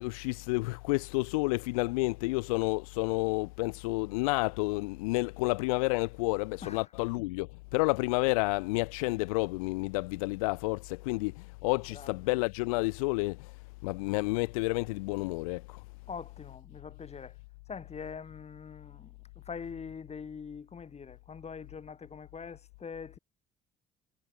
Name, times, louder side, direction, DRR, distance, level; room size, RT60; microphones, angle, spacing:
voice 1, 0.0-15.8, left 26 dB, 75° left, 0.6 m, -30 dB
voice 2, 16.1-17.4 17.7-23.2, left 6 dB, 35° left, 3.8 m, -43 dB
hypercardioid pair, 55°, 18 cm